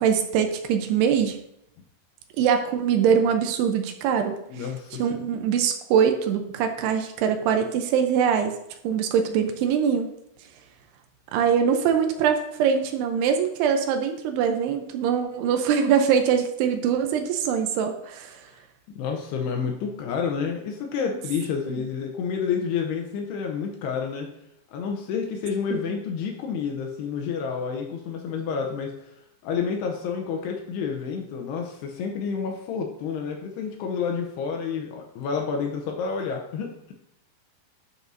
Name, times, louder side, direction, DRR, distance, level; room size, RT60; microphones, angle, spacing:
voice 1, 0.0-1.4 2.4-4.4 5.0-8.6 8.8-10.1 11.3-18.3, right 7 dB, 80° right, 5 dB, 2.4 m, -23 dB
voice 2, 4.5-5.3 19.0-24.3 24.7-28.9 29.4-36.9, left 6 dB, 80° left, 2 dB, 2.4 m, -29 dB
12.0 x 6.1 x 2.7 m, 0.79 s
omnidirectional pair, 5.5 m